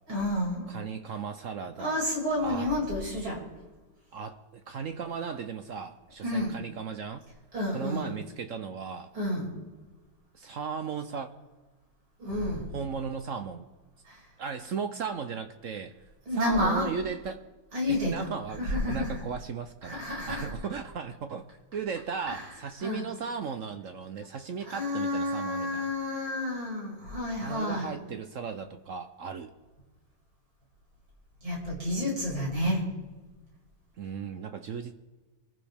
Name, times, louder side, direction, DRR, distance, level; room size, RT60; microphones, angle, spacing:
voice 1, 0.1-0.7 1.8-3.4 6.2-6.5 7.5-8.1 9.1-9.6 12.2-12.6 14.1-14.3 16.3-16.9 17.7-18.1 18.6-19.2 19.8-20.5 22.3-22.4 22.8-23.0 24.2-24.3 24.6-27.9 31.4-32.8, left 1 dB, 85° right, -4 dB, 6.7 m, -30 dB
voice 2, 0.7-2.0 2.4-2.7 4.1-7.3 7.7-9.1 10.3-11.3 12.7-13.7 14.4-16.0 16.3-17.4 17.9-21.4 21.7-25.9 27.4-29.5 34.0-34.9, right 6 dB, 60° right, 7 dB, 0.8 m, -36 dB
25.5 x 15.0 x 3.5 m, 1.2 s
omnidirectional pair, 2.1 m